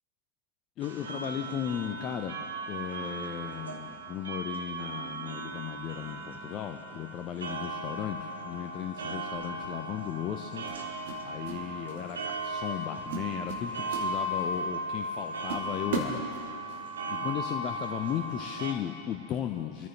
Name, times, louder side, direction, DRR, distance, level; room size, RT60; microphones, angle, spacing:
voice 1, 0.8-10.7 11.2-16.2 17.1-19.9, left 10 dB, 35° left, 5 dB, 0.7 m, -36 dB
sound 1, 0.8-18.7, right 1 dB, 70° right, 1.2 m, -37 dB
sound 2, 9.3-9.6 10.7-11.6 11.9-12.2 12.6-12.8 13.1-14.6 15.0-15.1 15.5-16.8, right 6 dB, 55° right, 2.1 m, -37 dB
25.0 x 14.0 x 3.0 m, 2.7 s
figure-of-eight pair, 90°, 0 cm